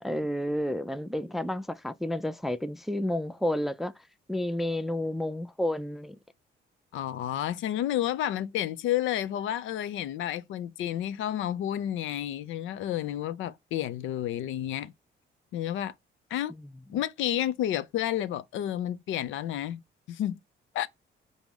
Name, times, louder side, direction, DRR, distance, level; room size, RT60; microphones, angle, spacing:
voice 1, 0.0-3.9 4.3-6.2 16.6-16.7, left 1 dB, ahead, 0.3 m, -30 dB
voice 2, 6.9-14.9 15.5-15.9 16.3-16.5 16.9-19.8 20.1-20.4 20.7-20.9, left 11 dB, 80° left, 0.5 m, -30 dB
5.2 x 2.1 x 4.7 m
cardioid pair, 90°, 20 cm